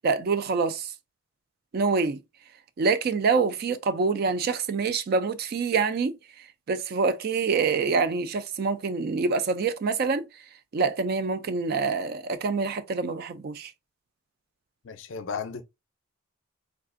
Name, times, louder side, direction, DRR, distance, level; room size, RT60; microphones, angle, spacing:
voice 1, 0.0-0.9 1.7-2.2 2.8-6.2 6.7-10.3 10.7-13.7, right 4 dB, 45° right, 0.3 m, -26 dB
voice 2, 14.8-15.6, left 6 dB, 65° left, 0.5 m, -34 dB
3.5 x 2.4 x 2.4 m
head